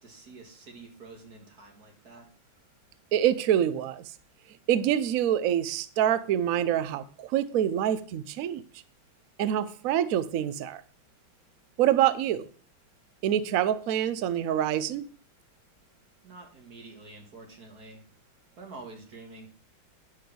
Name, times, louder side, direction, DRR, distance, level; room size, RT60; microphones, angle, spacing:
voice 1, 0.0-2.3 16.2-18.0 18.6-19.5, right 3 dB, 50° right, 2 dB, 2.5 m, -47 dB
voice 2, 3.1-4.0 4.7-8.6 9.4-10.8 11.8-12.5 13.2-15.0, right 11 dB, 85° right, 15 dB, 0.7 m, -26 dB
10.5 x 5.1 x 6.1 m, 0.40 s
omnidirectional pair, 2.2 m